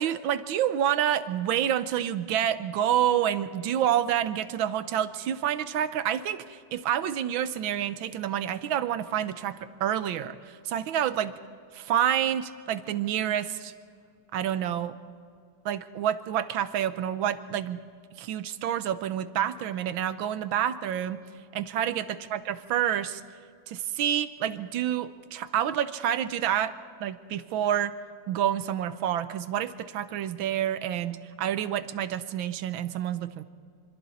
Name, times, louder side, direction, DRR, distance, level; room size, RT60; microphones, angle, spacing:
voice 1, 0.0-11.3 11.7-13.7 14.3-14.9 15.6-17.8 18.2-21.2 21.5-23.2 23.7-26.7 27.0-27.9 28.3-33.4, right 10 dB, 90° right, 13 dB, 1.6 m, -28 dB
26.0 x 25.5 x 4.2 m, 2.3 s
omnidirectional pair, 2.1 m